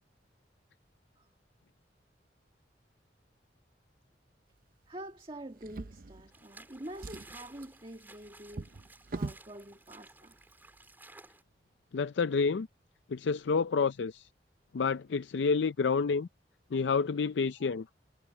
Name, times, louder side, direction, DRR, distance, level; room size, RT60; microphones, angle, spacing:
voice 1, 4.9-8.7 9.1-10.4 17.6-17.7, right 1 dB, 30° right, 1.8 m, -46 dB
Drawer open or close, 5.6-6.6 6.9-9.5 10.4-10.5 10.9-11.0, right 3 dB, 50° right, 0.6 m, -43 dB
sound 1, 6.3-11.4, right 2 dB, 10° right, 3.6 m, -55 dB
voice 2, 11.9-12.7 13.1-14.2 14.7-16.3 16.7-17.9, left 5 dB, 85° left, 0.4 m, -29 dB
head